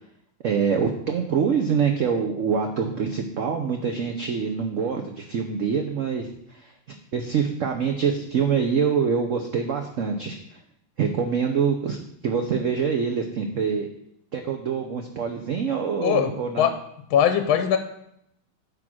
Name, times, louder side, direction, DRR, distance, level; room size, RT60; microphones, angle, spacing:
voice 1, 0.4-6.7 7.1-10.4 11.0-12.0 12.2-13.9 14.3-16.7, right 6 dB, 75° right, 4 dB, 0.7 m, -25 dB
voice 2, 16.0-16.7 17.1-17.8, left 9 dB, 85° left, 7 dB, 1.5 m, -21 dB
9.8 x 3.7 x 6.1 m, 0.75 s
omnidirectional pair, 2.2 m